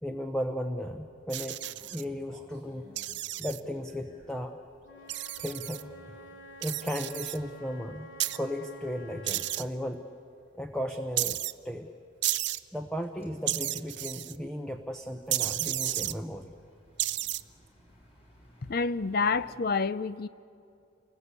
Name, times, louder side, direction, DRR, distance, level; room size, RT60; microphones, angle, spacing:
voice 1, 0.0-1.6 1.9-2.9 3.4-4.6 4.9-5.9 6.6-10.0 10.6-11.4 11.6-11.9 12.7-16.5, equal, 5° left, 0.8 m, -35 dB
sound 1, 1.1-6.6 7.1-7.7 8.0-19.6, equal, 30° left, 5.2 m, -60 dB
sound 2, 1.3-2.0 3.0-3.6 5.1-5.8 6.6-7.4 8.2-8.4 9.3-9.6 11.2-11.5 12.2-12.6 13.5-14.4 15.3-16.1 17.0-17.4, right 15 dB, 60° right, 0.6 m, -32 dB
Wind instrument woodwind instrument, 4.8-9.8, equal, 75° left, 2.6 m, -50 dB
voice 2, 18.7-20.3, left 4 dB, 50° left, 0.5 m, -28 dB
29.0 x 20.5 x 8.3 m
head